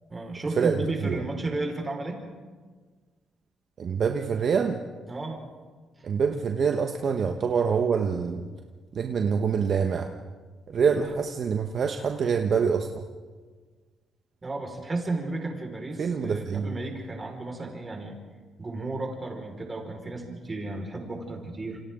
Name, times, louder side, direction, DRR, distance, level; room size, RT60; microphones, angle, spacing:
voice 1, 0.1-2.2 5.1-5.5 6.0-6.1 14.4-18.1 18.6-21.8, right 2 dB, 25° right, 1 dB, 5.0 m, -33 dB
voice 2, 3.8-4.8 6.0-8.5 8.9-10.1 10.7-13.0 16.0-16.8, right 6 dB, 55° right, 4 dB, 1.1 m, -25 dB
28.0 x 26.0 x 3.8 m, 1.5 s
cardioid pair, 90°, 0 cm